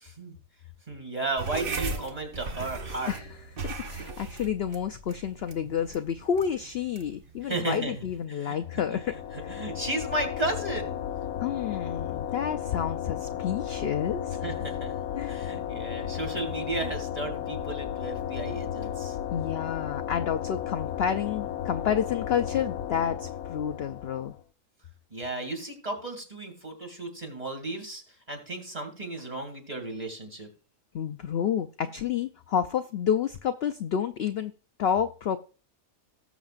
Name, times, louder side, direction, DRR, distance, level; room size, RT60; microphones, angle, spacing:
voice 1, 0.0-0.4 0.9-3.1 7.4-9.0 9.3-11.1 14.4-15.0 15.3-19.2 25.1-28.0 28.3-30.5, right 2 dB, 25° right, 3 dB, 2.6 m, -34 dB
sound 1, 1.4-8.2, right 3 dB, 45° right, 1.0 m, -38 dB
voice 2, 3.1-9.1 9.4-9.5 11.4-14.4 15.2-15.4 19.3-24.3 30.9-34.5 34.8-35.4, left 8 dB, 65° left, 9 dB, 0.6 m, -29 dB
sound 2, 8.6-24.4, left 10 dB, 85° left, 1.2 m, -34 dB
18.5 x 7.2 x 2.5 m, 0.36 s
omnidirectional pair, 1.5 m